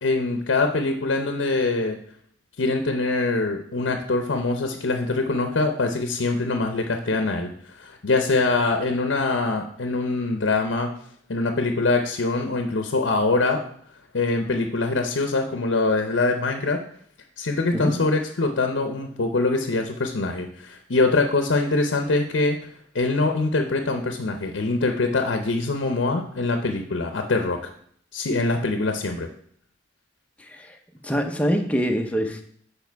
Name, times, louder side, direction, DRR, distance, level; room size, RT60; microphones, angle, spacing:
voice 1, 0.0-2.0 2.6-7.5 7.8-10.9 11.3-13.6 14.1-16.8 17.4-22.6 22.9-27.6 28.1-29.3, left 3 dB, 75° left, 5 dB, 0.7 m, -23 dB
voice 2, 30.4-30.8 31.0-32.4, equal, 5° left, 4 dB, 0.7 m, -24 dB
7.3 x 5.1 x 4.6 m, 0.63 s
head